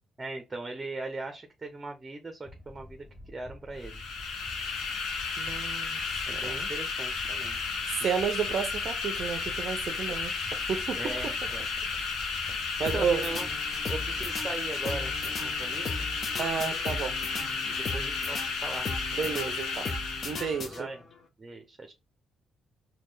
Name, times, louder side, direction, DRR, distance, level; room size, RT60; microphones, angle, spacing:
voice 1, 0.2-4.0 6.3-7.6 11.0-11.7 12.9-13.5 13.9-16.1 17.7-18.9 20.6-21.0 21.4-21.9, right 2 dB, 25° right, 0.7 m, -39 dB
sound 1, 2.4-14.5, left 1 dB, 15° left, 1.1 m, -48 dB
sound 2, 3.8-20.6, left 4 dB, 80° left, 0.8 m, -33 dB
voice 2, 5.4-6.0 6.3-6.7 7.9-11.3 12.8-13.2 16.4-17.2 19.1-19.9 20.2-20.9, right 7 dB, 60° right, 0.5 m, -32 dB
sound 3, 12.8-21.2, left 3 dB, 50° left, 0.8 m, -38 dB
4.1 x 2.3 x 3.2 m
cardioid pair, 90°, 0 cm